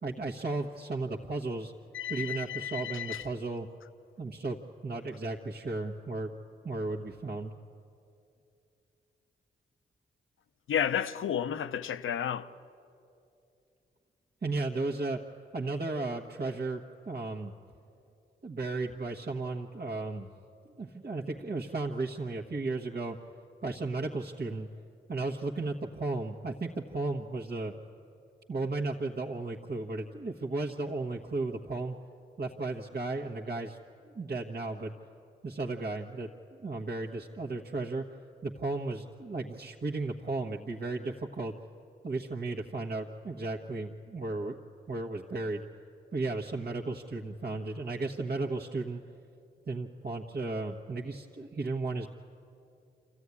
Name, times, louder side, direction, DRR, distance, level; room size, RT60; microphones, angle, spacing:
voice 1, 0.0-1.7 2.1-3.7 4.2-4.6 4.8-6.3 6.6-7.5 14.4-15.2 15.5-17.5 18.4-20.3 20.7-23.2 23.6-24.7 25.1-27.7 28.5-31.9 32.4-33.8 34.0-34.9 35.4-38.0 38.4-41.5 42.0-44.5 44.9-45.6 46.1-49.0 49.7-52.1, right 3 dB, 50° right, 1.3 m, -34 dB
voice 2, 1.9-3.3 10.7-12.5, left 9 dB, 75° left, 0.7 m, -32 dB
25.5 x 14.5 x 9.7 m
supercardioid pair, 40°, 21 cm